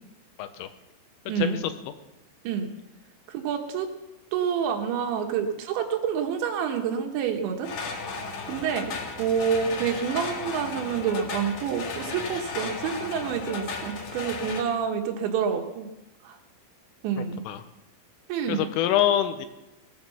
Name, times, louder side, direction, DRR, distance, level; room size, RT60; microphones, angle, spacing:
voice 1, 0.4-0.7 1.4-1.6 17.5-17.6 18.5-19.5, left 11 dB, 90° left, 10 dB, 3.5 m, -25 dB
voice 2, 1.3-1.6 2.4-2.7 3.3-3.9 4.3-7.7 8.5-15.9 16.2-16.4 17.0-17.4 18.3-18.7, right 7 dB, 70° right, 4 dB, 3.2 m, -28 dB
sound 1, 7.6-14.6, left 4 dB, 55° left, 2.2 m, -35 dB
18.5 x 9.5 x 7.1 m, 0.97 s
omnidirectional pair, 5.9 m